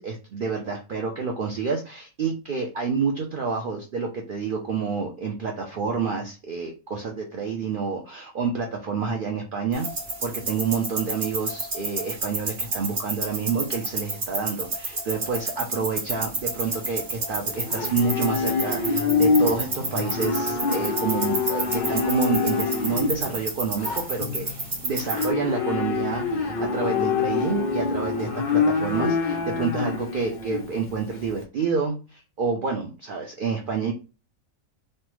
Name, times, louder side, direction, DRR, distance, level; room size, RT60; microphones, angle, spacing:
voice 1, 0.0-9.9 10.2-24.5 24.8-33.9, right 5 dB, 80° right, 2 dB, 0.4 m, -28 dB
sound 1, 9.7-25.3, right 3 dB, 40° right, 1.0 m, -31 dB
Livestock farm animals working animals, 16.6-31.4, left 5 dB, 90° left, 0.4 m, -26 dB
3.2 x 2.1 x 3.0 m, 0.33 s
omnidirectional pair, 1.5 m